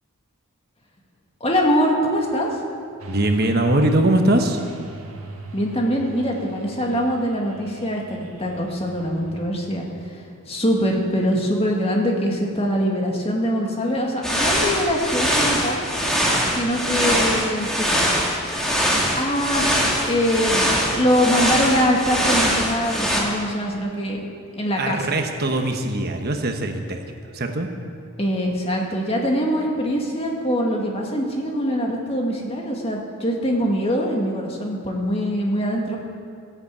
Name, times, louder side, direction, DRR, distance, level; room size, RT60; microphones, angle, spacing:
voice 1, 1.4-2.5 5.5-9.9 10.5-15.9 16.5-18.0 19.1-24.2 24.6-25.1 28.2-36.0, equal, 25° left, -1 dB, 2.1 m, -23 dB
sound 1, 3.0-9.5, right 2 dB, 80° right, 1.8 m, -41 dB
voice 2, 3.1-4.6 24.8-27.0 27.3-27.7, right 1 dB, 45° right, 4 dB, 1.1 m, -21 dB
sound 2, 14.2-23.2, equal, ahead, 2.2 m, -22 dB
15.0 x 11.5 x 8.4 m, 2.3 s
head